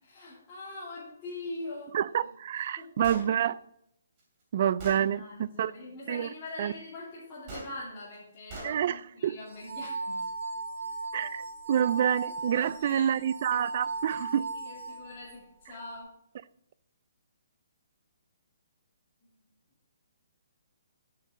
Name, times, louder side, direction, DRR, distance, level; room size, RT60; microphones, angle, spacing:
voice 1, 0.0-1.9 2.8-3.0 4.9-10.3 12.5-13.2 14.4-16.1 19.2-19.3, left 2 dB, 20° left, 2.8 m, -43 dB
voice 2, 1.9-3.6 4.5-5.2 5.6-5.7 6.1-6.3 6.6-6.7 8.6-9.4 11.1-11.4 11.7-14.4, right 9 dB, 40° right, 0.4 m, -27 dB
Gunshot gunfire, 3.0-3.3 4.2-4.3 4.8-5.0 7.5-7.7 8.5-8.7, right 2 dB, 25° right, 3.0 m, -40 dB
sound 1, 9.5-15.4, right 3 dB, 60° right, 3.3 m, -37 dB
10.5 x 7.3 x 3.7 m
hypercardioid pair, 165°, 0 cm